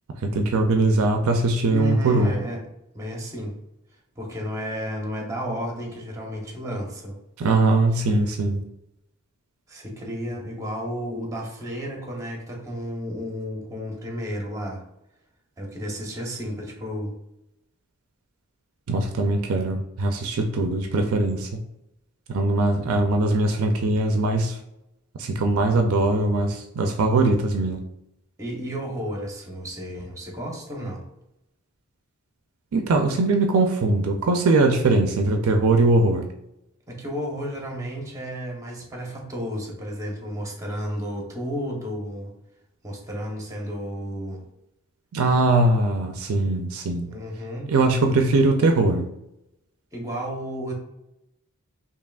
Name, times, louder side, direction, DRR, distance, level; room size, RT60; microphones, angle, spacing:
voice 1, 0.2-2.3 7.4-8.6 18.9-21.6 22.3-24.6 25.2-27.8 32.7-36.3 45.1-47.1 47.7-49.1, right 2 dB, 65° right, 5 dB, 0.4 m, -21 dB
voice 2, 1.7-2.6 2.9-3.5 4.2-7.2 8.1-8.2 9.7-14.8 15.6-17.1 28.4-31.0 36.9-42.3 42.8-44.4 47.1-47.7 49.9-50.7, equal, 15° right, 0 dB, 0.8 m, -32 dB
4.8 x 2.9 x 2.3 m, 0.86 s
head